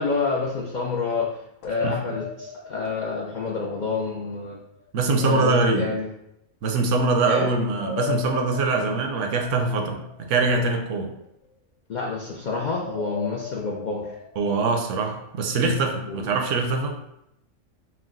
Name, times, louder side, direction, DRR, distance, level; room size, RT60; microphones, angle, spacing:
voice 1, 0.0-4.6 5.2-6.1 7.2-7.5 11.9-14.1 16.1-16.3, left 4 dB, 60° left, -2 dB, 0.5 m, -28 dB
sound 1, 1.6-4.6 7.7-11.0 12.7-15.5, left 7 dB, 80° left, 0.9 m, -38 dB
voice 2, 1.8-2.2 4.9-5.9 6.6-11.1 14.4-17.0, right 3 dB, 75° right, 4 dB, 1.0 m, -23 dB
4.5 x 2.2 x 3.7 m, 0.82 s
omnidirectional pair, 1.3 m